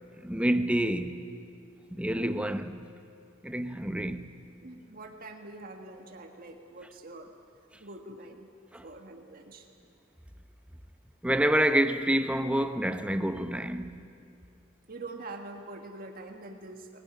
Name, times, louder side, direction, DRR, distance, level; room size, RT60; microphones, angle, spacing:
voice 1, 0.2-1.3 1.9-2.8 3.4-4.3 8.7-8.8 11.2-14.1, right 1 dB, 5° right, 0.7 m, -28 dB
voice 2, 4.6-7.3 7.8-8.5 8.8-9.7 14.9-17.0, right 2 dB, 45° right, 1.6 m, -44 dB
20.0 x 18.0 x 9.8 m
head